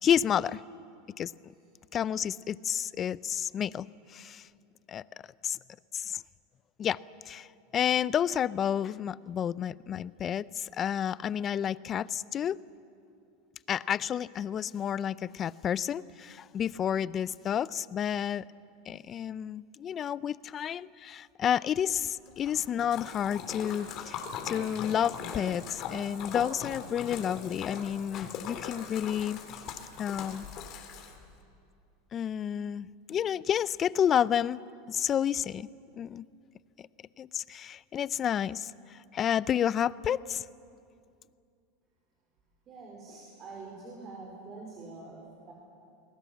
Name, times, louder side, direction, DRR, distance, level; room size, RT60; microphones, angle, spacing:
voice 1, 0.0-0.6 1.2-1.3 1.9-4.5 4.9-5.0 5.4-5.6 5.9-6.2 6.8-7.0 7.3-7.5 7.7-12.6 13.7-18.4 18.9-29.4 30.0-30.5 32.1-34.6 34.9-36.3 36.8-36.9 37.2-40.4, left 9 dB, 30° left, 19 dB, 0.5 m, -30 dB
Splash splatter, 22.3-31.4, left 6 dB, 45° left, 3.1 m, -40 dB
voice 2, 42.7-45.5, right 3 dB, 35° right, -2 dB, 4.9 m, -45 dB
28.5 x 19.5 x 7.4 m, 2.5 s
supercardioid pair, 125°, 0 cm